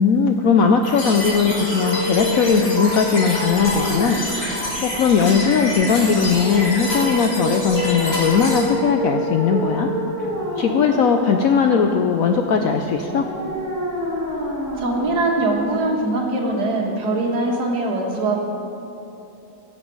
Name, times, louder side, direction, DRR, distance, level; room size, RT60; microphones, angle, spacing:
voice 1, 0.0-9.9 10.6-13.3, left 6 dB, 80° left, 4 dB, 0.7 m, -19 dB
sound 1, 0.8-8.6, left 1 dB, 60° left, 2.9 m, -27 dB
sound 2, 1.1-16.1, equal, 10° right, 1.8 m, -29 dB
voice 2, 14.8-18.4, right 2 dB, 60° right, 0 dB, 2.0 m, -22 dB
16.5 x 7.3 x 4.6 m, 2.9 s
omnidirectional pair, 2.1 m